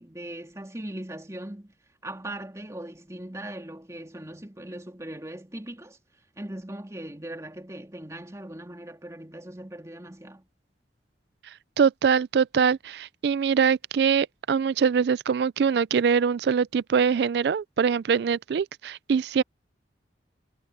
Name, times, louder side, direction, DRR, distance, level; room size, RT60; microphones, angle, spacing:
voice 1, 0.0-1.7 2.0-6.0 6.4-10.4, right 1 dB, 15° right, 2.8 m, -39 dB
voice 2, 11.8-19.4, right 6 dB, 65° right, 0.3 m, -23 dB
head